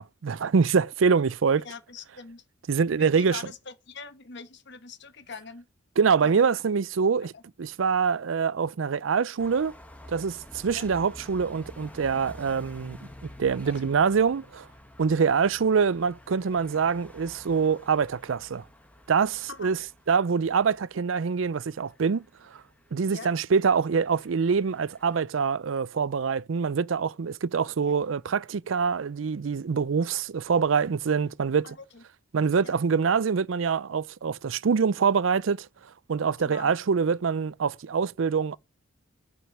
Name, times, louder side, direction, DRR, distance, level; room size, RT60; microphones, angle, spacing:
voice 1, 0.0-1.7 2.7-3.4 6.0-7.3 7.6-9.7 10.1-13.0 13.4-14.7 15.0-18.6 19.1-19.8 20.1-22.2 22.5-22.6 22.9-31.8 32.3-35.7 36.1-38.6, right 6 dB, 80° right, 0.5 m, -25 dB
voice 2, 1.6-2.4 3.0-5.7 6.2-6.5 7.3-7.4 10.7-10.9 13.5-13.9 19.5-19.7 23.1-23.3 27.9-28.0 31.6-32.0 32.6-32.7 36.4-36.7, left 5 dB, 60° left, 1.2 m, -43 dB
sound 1, 9.4-25.2, left 1 dB, 10° left, 1.6 m, -50 dB
7.9 x 5.1 x 7.4 m
head